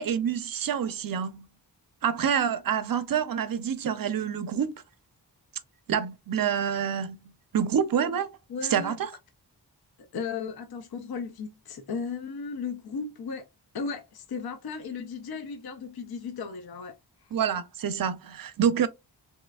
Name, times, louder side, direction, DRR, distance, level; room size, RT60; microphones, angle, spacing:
voice 1, 0.0-1.5 2.0-4.8 5.9-7.2 7.5-8.3 8.7-9.1 17.3-18.9, right 8 dB, 55° right, 0.5 m, -27 dB
voice 2, 8.5-8.9 10.0-13.5 13.7-17.0 17.2-17.3, left 5 dB, 60° left, 0.6 m, -35 dB
3.1 x 3.0 x 2.2 m
wide cardioid pair, 75°, 41 cm